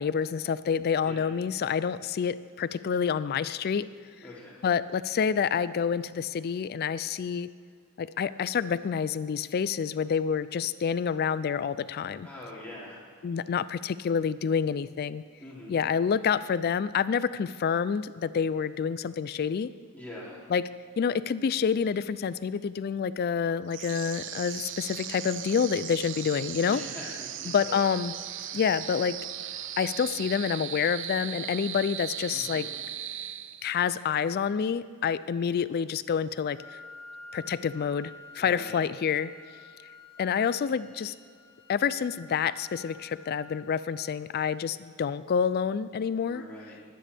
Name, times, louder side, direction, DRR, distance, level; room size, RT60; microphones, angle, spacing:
voice 1, 0.0-3.9 4.6-7.5 8.0-12.3 13.2-15.2 15.7-19.7 20.5-20.6 21.0-26.8 27.5-28.1 28.5-29.2 29.8-32.7 33.6-36.8 37.3-39.3 40.2-41.1 41.7-46.4, left 7 dB, 45° left, 16 dB, 0.3 m, -28 dB
voice 2, 4.2-4.6 12.2-13.0 15.4-15.8 19.9-20.4 26.6-27.8 32.3-32.6 38.4-38.9 46.3-46.8, left 1 dB, 5° left, -7 dB, 3.1 m, -43 dB
sound 1, 23.7-33.9, right 10 dB, 55° right, 0.5 m, -38 dB
Wind instrument woodwind instrument, 36.5-44.5, left 2 dB, 75° left, 2.1 m, -50 dB
20.0 x 10.0 x 3.5 m, 2.1 s
head